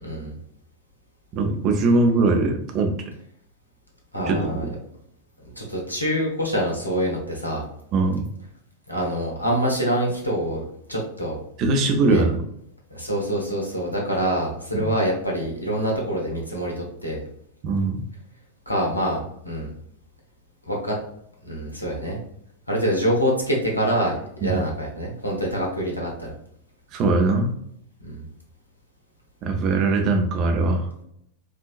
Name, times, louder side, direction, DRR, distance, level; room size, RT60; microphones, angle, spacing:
voice 1, 0.0-0.4 4.1-4.7 5.6-7.7 8.9-11.4 12.0-12.2 12.9-17.2 18.7-19.7 20.7-21.0 21.4-22.2 22.7-26.3 28.0-28.3, equal, 85° left, -1 dB, 1.1 m, -25 dB
voice 2, 1.3-3.0 4.2-4.7 7.9-8.2 11.6-12.4 14.7-14.9 17.6-18.0 24.4-24.6 26.9-27.5 29.4-30.9, right 3 dB, 35° right, 4 dB, 0.8 m, -21 dB
4.9 x 2.8 x 2.5 m, 0.71 s
figure-of-eight pair, 90°, 0 cm